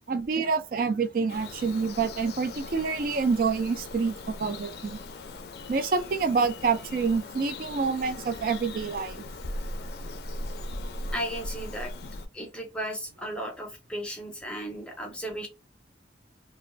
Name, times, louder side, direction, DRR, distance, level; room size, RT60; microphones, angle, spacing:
voice 1, 0.1-5.0 5.7-9.2, right 5 dB, 50° right, 0.3 m, -27 dB
Bird vocalization bird call bird song, 1.3-12.3, left 2 dB, 55° left, 0.4 m, -39 dB
voice 2, 11.1-11.9 12.3-15.5, equal, 5° left, 0.6 m, -35 dB
2.5 x 2.3 x 3.1 m
head